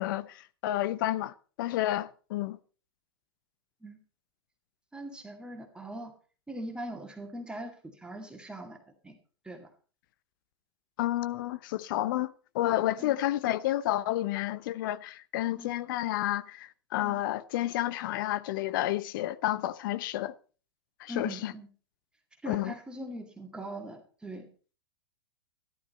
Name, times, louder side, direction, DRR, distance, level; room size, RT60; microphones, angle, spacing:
voice 1, 0.0-2.6 11.0-20.3 21.0-21.5 22.5-22.7, left 14 dB, 55° left, 0.8 m, -30 dB
voice 2, 4.9-6.1 6.5-8.8 9.0-9.2 9.4-9.7 13.0-13.2 15.6-15.7 17.0-17.2 21.1-21.7 22.4-24.5, right 1 dB, 5° right, 2.2 m, -41 dB
13.5 x 12.0 x 4.3 m
hypercardioid pair, 100°, 13 cm